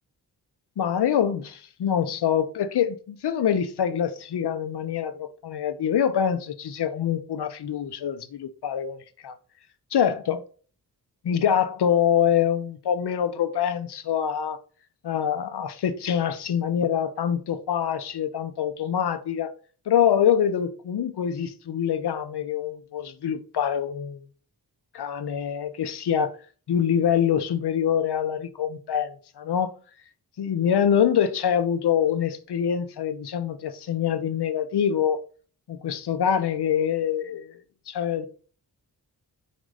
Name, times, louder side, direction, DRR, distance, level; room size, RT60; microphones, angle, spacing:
voice 1, 0.8-9.3 9.9-10.4 11.2-14.6 15.0-19.5 19.9-24.2 24.9-26.4 26.7-29.7 30.4-35.2 35.7-37.6 37.9-38.3, left 8 dB, 85° left, 0.7 m, -25 dB
5.2 x 3.8 x 4.8 m
wide cardioid pair, 140°, 39 cm